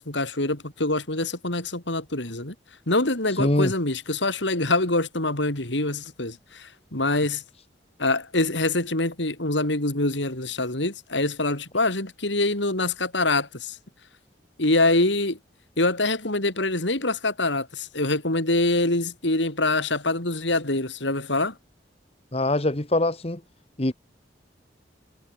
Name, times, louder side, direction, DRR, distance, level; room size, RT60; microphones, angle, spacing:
voice 1, 0.0-2.5 2.9-7.4 8.0-13.8 14.6-15.4 15.8-21.5, left 2 dB, 75° left, 4.5 m, -25 dB
voice 2, 3.4-3.7 22.3-23.4 23.8-23.9, left 1 dB, 35° left, 1.5 m, -23 dB
head